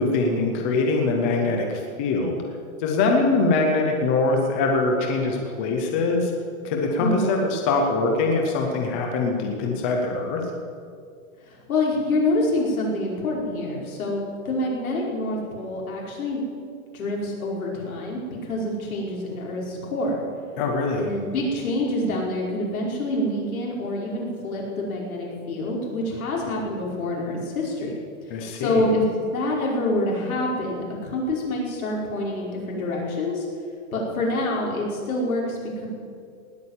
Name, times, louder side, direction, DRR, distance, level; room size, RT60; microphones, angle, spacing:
voice 1, 0.0-2.4 2.8-6.3 6.6-10.4 20.6-21.1 28.3-28.9, left 3 dB, 10° left, 2 dB, 0.4 m, -23 dB
voice 2, 7.0-7.3 11.4-16.4 16.9-20.1 21.0-27.9 28.5-33.5 33.9-35.9, left 1 dB, 80° left, -2 dB, 5.3 m, -26 dB
19.0 x 8.7 x 8.2 m, 2.2 s
hypercardioid pair, 165°, 42 cm